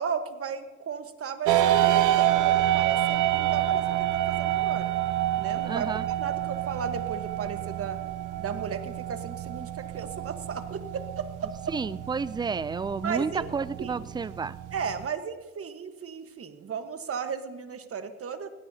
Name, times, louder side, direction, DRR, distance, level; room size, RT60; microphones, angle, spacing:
voice 1, 0.0-4.9 5.4-5.9 6.2-8.0 8.4-11.7 13.0-13.5 13.8-14.1 14.7-18.5, right 6 dB, 50° right, 8 dB, 1.4 m, -35 dB
sound 1, 1.5-15.1, right 13 dB, 85° right, 0.8 m, -28 dB
voice 2, 5.6-6.1 11.7-14.6, right 5 dB, 15° right, 17 dB, 0.4 m, -31 dB
19.5 x 17.0 x 2.8 m, 1.3 s
cardioid pair, 90°, 30 cm